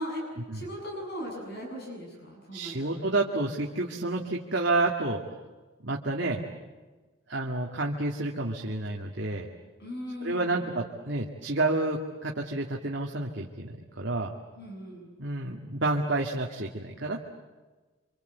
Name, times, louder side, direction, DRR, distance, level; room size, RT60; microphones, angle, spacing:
voice 1, 0.0-2.9 9.8-10.6 14.5-15.1, equal, 50° left, 0 dB, 7.6 m, -38 dB
voice 2, 2.5-5.2 5.8-6.4 7.3-9.5 10.2-14.3 15.2-17.2, right 2 dB, 55° right, -1 dB, 2.1 m, -29 dB
28.0 x 26.0 x 8.2 m, 1.3 s
head